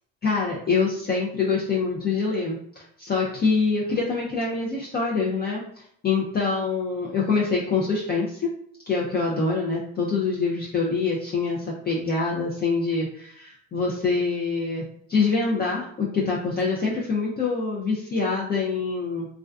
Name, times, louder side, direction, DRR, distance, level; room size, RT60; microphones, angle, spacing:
voice 1, 0.2-8.5 8.9-19.3, left 4 dB, 25° left, -4 dB, 0.5 m, -25 dB
2.3 x 2.2 x 2.4 m, 0.68 s
hypercardioid pair, 75°, 42 cm